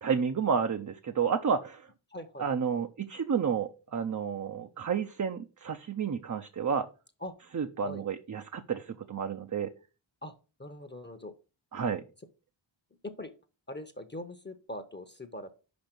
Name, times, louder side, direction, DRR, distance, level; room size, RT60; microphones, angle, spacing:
voice 1, 0.0-1.9 2.4-6.9 7.5-9.7 11.7-12.0, right 6 dB, 40° right, 7 dB, 0.6 m, -31 dB
voice 2, 2.1-2.5 7.2-7.3 7.8-8.0 10.2-10.3 10.6-11.3 13.0-13.3 13.7-15.5, left 1 dB, 20° left, 9 dB, 0.9 m, -41 dB
5.3 x 5.2 x 5.9 m, 0.33 s
cardioid pair, 65°, 48 cm